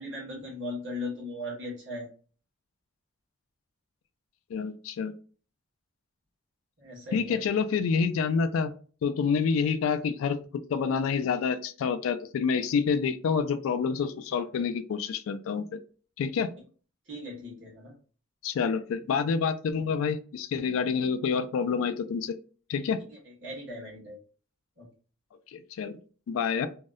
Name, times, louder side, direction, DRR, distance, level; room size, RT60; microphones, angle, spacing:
voice 1, 0.0-2.1 6.8-7.4 17.1-17.9 23.1-24.2 24.8-24.9, left 1 dB, 60° right, -3 dB, 1.3 m, -38 dB
voice 2, 4.5-5.1 7.1-8.7 9.0-10.4 10.7-15.8 16.2-16.5 18.4-22.4 22.7-23.0 25.5-26.0 26.3-26.7, left 6 dB, 75° left, 12 dB, 0.3 m, -28 dB
2.7 x 2.0 x 2.3 m, 0.40 s
head